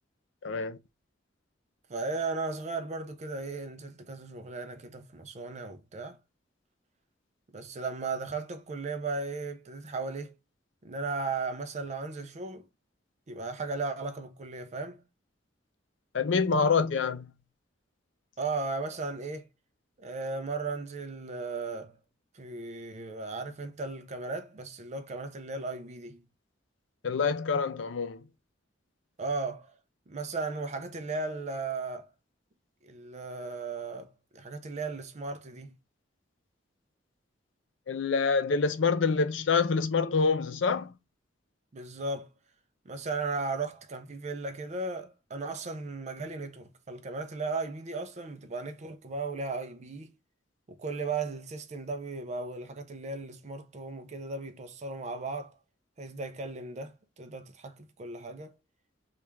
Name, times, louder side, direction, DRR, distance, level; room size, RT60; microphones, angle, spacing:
voice 1, 0.4-0.8 16.1-17.3 27.0-28.2 37.9-40.9, left 5 dB, 70° left, 0.5 m, -26 dB
voice 2, 1.9-6.2 7.5-10.3 10.8-12.7 13.3-15.0 18.4-19.5 20.0-22.0 22.3-26.2 29.2-29.7 30.1-32.1 32.8-35.7 41.7-42.3 42.9-50.1 50.7-55.5 56.0-58.5, right 3 dB, 35° right, 0.5 m, -36 dB
3.3 x 2.4 x 3.0 m
head